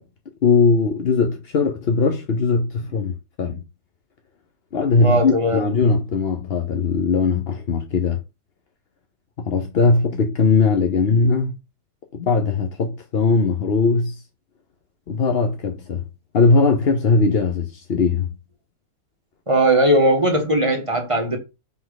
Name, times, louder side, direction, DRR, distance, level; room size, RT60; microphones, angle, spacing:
voice 1, 0.4-3.6 4.7-8.2 9.4-11.5 12.1-14.2 15.1-16.0 16.3-18.3, left 4 dB, 50° left, 0.8 m, -19 dB
voice 2, 5.0-5.6 19.5-21.4, right 1 dB, 20° right, 1.4 m, -18 dB
5.7 x 4.9 x 4.0 m
omnidirectional pair, 1.9 m